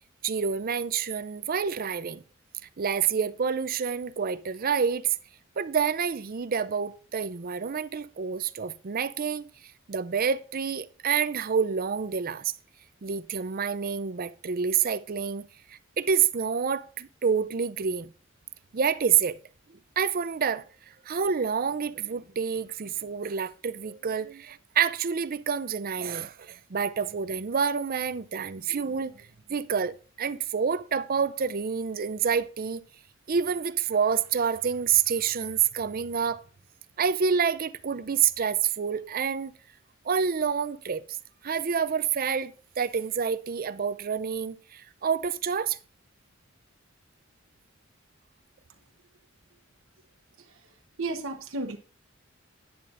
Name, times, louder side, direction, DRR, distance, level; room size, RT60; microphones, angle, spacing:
voice 1, 0.2-2.2 2.8-5.2 5.6-9.5 9.9-12.5 13.0-18.1 18.7-19.4 19.7-20.6 21.1-32.8 33.3-36.5 37.0-39.5 40.0-41.0 41.4-45.8, right 6 dB, 45° right, 0.5 m, -28 dB
voice 2, 51.0-51.8, right 2 dB, 75° right, 1.0 m, -32 dB
10.5 x 10.5 x 2.6 m
head